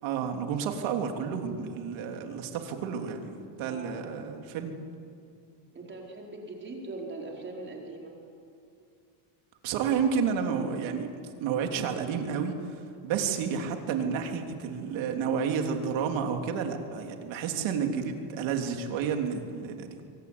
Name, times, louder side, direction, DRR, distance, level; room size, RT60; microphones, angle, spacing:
voice 1, 0.0-4.7 9.6-11.1 11.4-12.5 13.0-20.0, right 6 dB, 70° right, 4 dB, 3.5 m, -30 dB
voice 2, 3.7-4.0 5.7-8.1, right 2 dB, 25° right, -1 dB, 4.6 m, -40 dB
26.0 x 23.5 x 9.6 m, 2.4 s
cardioid pair, 160°, 49 cm